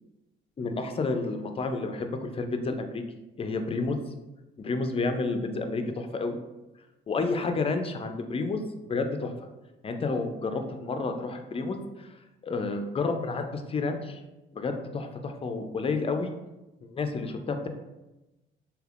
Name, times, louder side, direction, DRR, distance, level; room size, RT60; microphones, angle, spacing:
voice 1, 0.6-3.0 3.4-4.0 4.6-6.4 7.1-8.6 8.9-9.3 9.8-12.2 12.4-14.2 14.5-16.3 16.8-17.7, left 3 dB, 30° left, 6 dB, 0.4 m, -30 dB
3.3 x 2.8 x 2.4 m, 1.0 s
cardioid pair, 90°, 20 cm